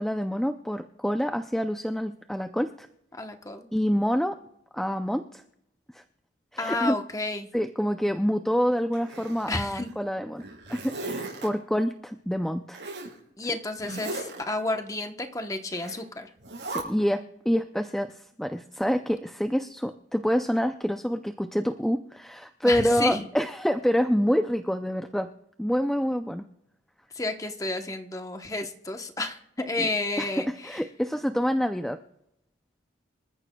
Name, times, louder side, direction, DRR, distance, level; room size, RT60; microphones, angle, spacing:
voice 1, 0.0-2.9 3.7-4.4 4.7-5.4 5.9-6.0 6.5-6.9 7.5-10.4 10.7-12.8 16.7-25.3 25.6-26.4 29.8-29.9 30.2-30.3 30.6-32.0, equal, ahead, 7 dB, 0.4 m, -27 dB
voice 2, 3.1-3.7 6.6-7.5 9.5-9.9 13.4-16.3 22.6-23.2 27.1-30.8, left 2 dB, 20° left, 6 dB, 0.9 m, -31 dB
Zipper (clothing), 8.9-9.9 10.4-11.5 12.7-13.1 13.8-14.4 15.7-16.0 16.4-16.8, right 2 dB, 80° right, 6.4 m, -37 dB
26.5 x 14.0 x 2.3 m, 0.80 s
head